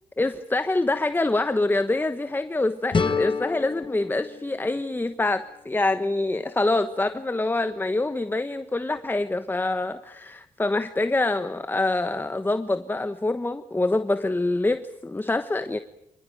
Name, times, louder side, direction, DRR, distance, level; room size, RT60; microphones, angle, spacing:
voice 1, 0.2-15.8, left 2 dB, 15° left, 11 dB, 1.2 m, -25 dB
sound 1, 2.9-5.8, left 5 dB, 35° left, 1.5 m, -30 dB
26.5 x 19.5 x 9.2 m, 0.85 s
cardioid pair, 75°, 14 cm